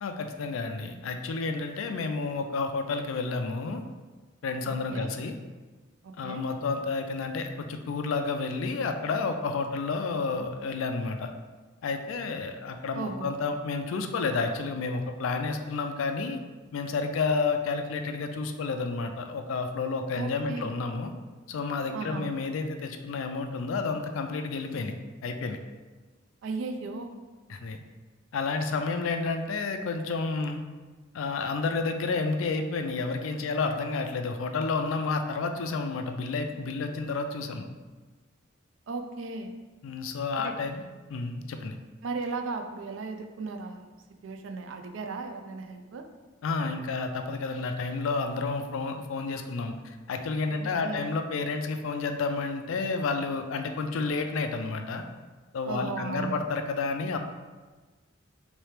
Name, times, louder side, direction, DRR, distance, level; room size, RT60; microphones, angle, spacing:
voice 1, 0.0-3.8 4.4-5.3 6.2-11.3 11.8-16.4 16.7-21.1 21.5-24.9 25.2-25.6 27.5-27.8 28.3-30.6 31.1-37.6 39.8-40.8 41.1-41.8 46.4-55.0 55.5-57.2, left 4 dB, 80° left, 6 dB, 0.4 m, -30 dB
voice 2, 4.6-5.1 6.0-6.4 12.9-13.3 20.1-20.7 21.9-22.3 26.4-27.1 38.9-39.5 40.4-40.5 42.0-43.9 44.2-46.0 50.5-51.1 55.7-56.4, right 4 dB, 70° right, 6 dB, 0.4 m, -36 dB
3.3 x 3.1 x 3.2 m, 1.3 s
head